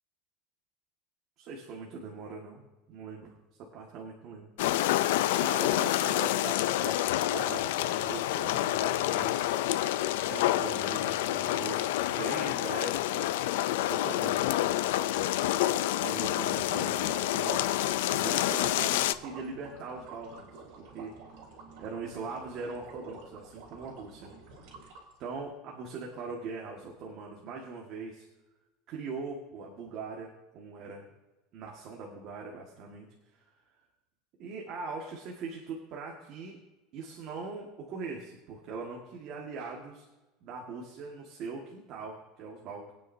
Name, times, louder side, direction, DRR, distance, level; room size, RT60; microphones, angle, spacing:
voice 1, 1.4-2.6 2.9-4.5 5.4-9.4 10.3-13.3 13.8-14.7 16.0-21.1 21.8-24.3 25.2-28.3 28.9-31.1 31.5-33.1 33.3-33.5 34.4-36.6 36.9-40.1 40.4-42.9, right 4 dB, 40° right, -1 dB, 1.8 m, -41 dB
sound 1, 4.6-19.1, left 14 dB, 85° left, 0.5 m, -28 dB
sound 2, 16.5-25.4, right 4 dB, 60° right, 3.4 m, -50 dB
22.0 x 9.1 x 2.8 m, 1.1 s
cardioid pair, 170°, 0 cm